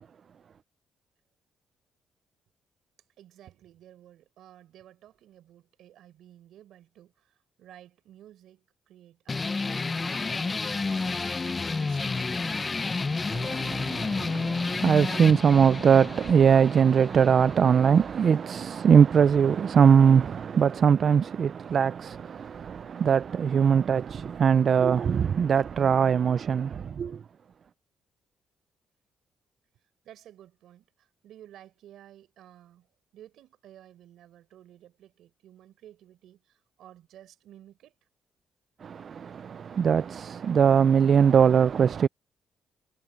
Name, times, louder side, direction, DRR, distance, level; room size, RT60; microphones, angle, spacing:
voice 1, 3.2-12.7 30.0-32.9 33.1-37.9, right 12 dB, 80° right, 4.3 m, -53 dB
sound 1, 9.3-18.3, left 3 dB, 30° left, 0.6 m, -31 dB
voice 2, 13.3-27.2 38.8-42.1, right 7 dB, 50° right, 0.3 m, -21 dB
cardioid pair, 90°, 0 cm